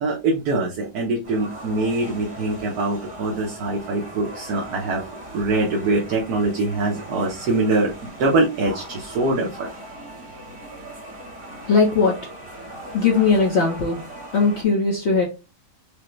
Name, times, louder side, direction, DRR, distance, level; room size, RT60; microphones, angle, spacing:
voice 1, 0.0-7.9 8.2-9.7, right 2 dB, 70° right, 1.3 m, -23 dB
sound 1, 1.2-14.6, right 1 dB, 45° right, 2.1 m, -39 dB
voice 2, 11.6-12.1 12.9-14.0 14.3-15.2, left 4 dB, 50° left, 1.0 m, -19 dB
5.0 x 2.2 x 3.0 m
omnidirectional pair, 1.7 m